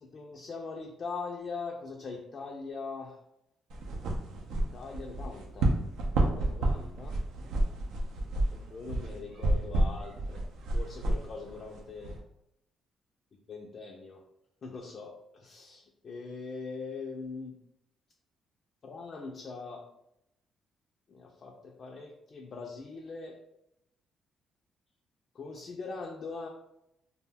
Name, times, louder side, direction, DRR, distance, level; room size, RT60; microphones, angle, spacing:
voice 1, 0.0-3.2 4.3-4.4 4.7-5.7 6.2-7.2 8.5-10.4 10.7-12.2 13.5-14.2 14.6-17.6 18.8-19.9 21.1-23.4 25.3-26.5, left 4 dB, 50° left, 1 dB, 0.4 m, -41 dB
sound 1, 3.7-12.2, right 1 dB, 85° right, 0.5 m, -30 dB
2.3 x 2.2 x 3.4 m, 0.80 s
cardioid pair, 90°, 0 cm